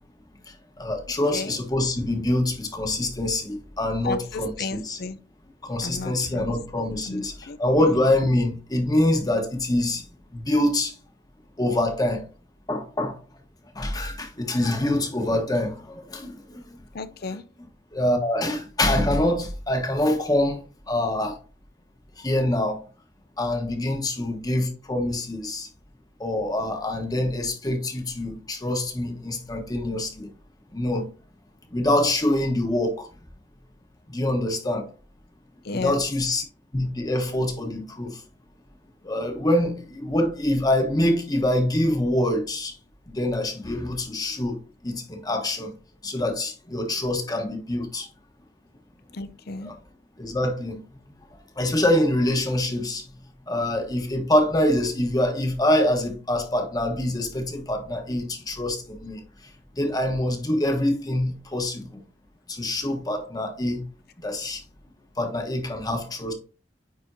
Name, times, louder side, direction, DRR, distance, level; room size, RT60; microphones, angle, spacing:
voice 1, 0.8-5.0 5.6-10.1 10.3-10.9 11.6-12.2 12.7-13.2 13.7-16.6 17.9-20.6 20.9-21.4 22.2-22.8 23.4-25.7 26.2-30.3 30.7-31.1 31.7-33.1 34.1-34.9 35.7-36.4 36.7-38.2 39.0-42.7 43.1-44.6 44.8-45.7 46.0-48.1 49.6-49.8 50.2-50.8 51.6-53.0 53.5-59.2 59.8-62.0 62.5-63.8 64.2-64.6 65.2-66.3, left 1 dB, 20° left, 1.3 m, -25 dB
voice 2, 1.3-1.6 4.0-5.2 5.8-6.6 7.1-7.9 16.9-17.4 35.6-36.0 49.1-49.7, left 3 dB, 60° left, 0.6 m, -34 dB
9.4 x 4.4 x 2.7 m
head